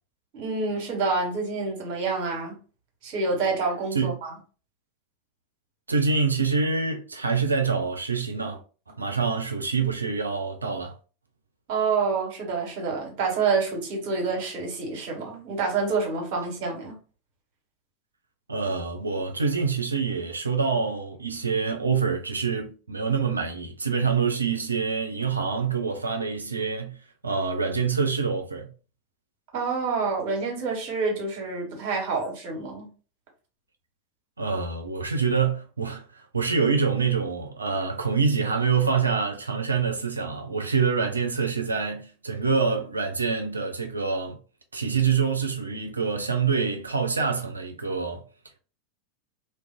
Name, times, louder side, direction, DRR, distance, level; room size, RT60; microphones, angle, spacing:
voice 1, 0.3-2.6 3.0-4.3 11.7-16.9 29.5-32.9, right 4 dB, 55° right, 1.1 m, -27 dB
voice 2, 5.9-8.6 8.9-10.9 18.5-27.0 27.2-28.7 34.4-44.4 44.7-48.2, right 5 dB, 90° right, 0.4 m, -26 dB
2.4 x 2.2 x 2.4 m
figure-of-eight pair, 85°, 0 cm